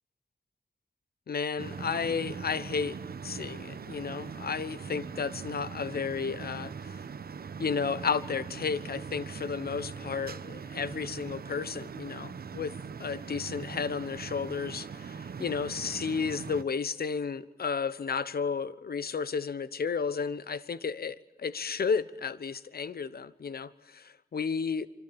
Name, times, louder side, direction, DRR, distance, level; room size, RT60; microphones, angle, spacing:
voice 1, 1.3-3.0 3.2-7.0 7.6-12.7 13.0-24.9, left 5 dB, 85° left, 16 dB, 1.0 m, -33 dB
sound 1, 1.6-16.6, right 6 dB, 85° right, 1.0 m, -41 dB
25.5 x 25.5 x 8.8 m, 0.95 s
wide cardioid pair, 65°, 15 cm